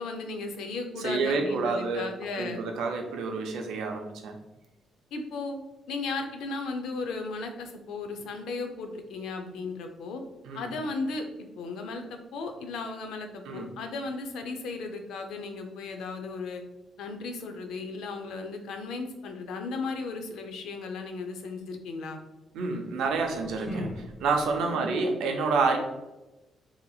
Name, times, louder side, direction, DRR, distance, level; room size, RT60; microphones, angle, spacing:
voice 1, 0.0-2.6 5.1-10.2 10.5-11.2 11.6-16.6 17.0-22.2 24.6-25.0, left 3 dB, 85° left, 5 dB, 0.4 m, -36 dB
voice 2, 1.0-2.1 2.3-4.4 10.5-10.7 13.5-13.7 22.5-25.8, right 4 dB, 85° right, 3 dB, 0.5 m, -28 dB
sound 1, 23.0-24.7, equal, 25° left, 1.3 m, -39 dB
2.8 x 2.6 x 2.3 m, 1.0 s
cardioid pair, 90°, 0 cm